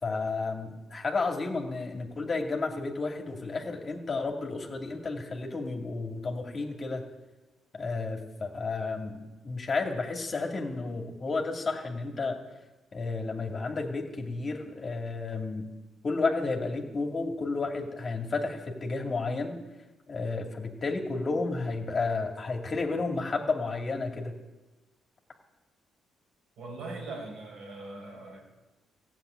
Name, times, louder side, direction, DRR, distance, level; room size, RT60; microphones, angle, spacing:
voice 1, 0.0-7.0 7.7-12.4 12.9-15.6 16.0-19.6 20.1-24.3, left 3 dB, 35° left, 2 dB, 2.5 m, -32 dB
voice 2, 26.6-28.4, right 2 dB, 75° right, -1 dB, 5.1 m, -40 dB
15.0 x 7.6 x 9.5 m, 1.1 s
cardioid pair, 90°, 0 cm